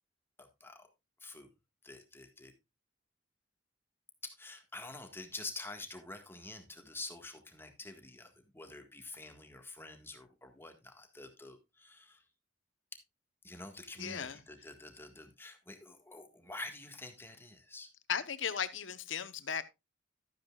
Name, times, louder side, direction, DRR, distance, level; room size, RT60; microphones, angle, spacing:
voice 1, 0.4-0.9 1.2-1.5 1.8-2.5 4.4-12.2 13.4-17.9, left 2 dB, 10° left, 1.7 m, -47 dB
voice 2, 14.0-14.4 18.1-19.6, left 7 dB, 70° left, 1.0 m, -36 dB
13.0 x 9.3 x 2.4 m
head